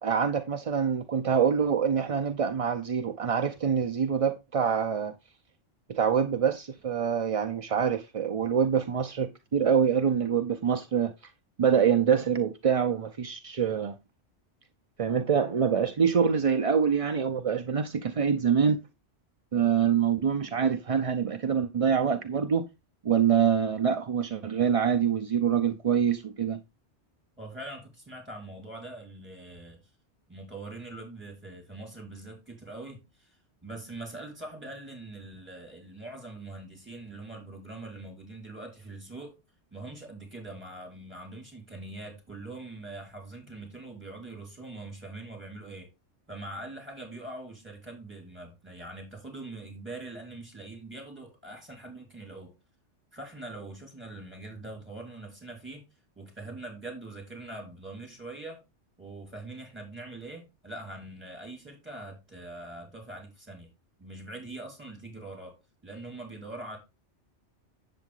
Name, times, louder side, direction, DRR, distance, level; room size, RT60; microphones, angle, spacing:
voice 1, 0.0-5.1 5.9-11.3 11.6-14.0 15.0-18.8 19.5-22.7 23.0-26.6, right 7 dB, 45° right, 0.5 m, -25 dB
voice 2, 27.4-29.8 30.3-39.4 39.7-45.9 46.3-52.5 53.1-55.8 56.2-58.6 59.0-63.7 64.0-65.6 65.8-66.8, right 2 dB, 10° right, 4.6 m, -43 dB
8.1 x 7.7 x 3.7 m
omnidirectional pair, 1.2 m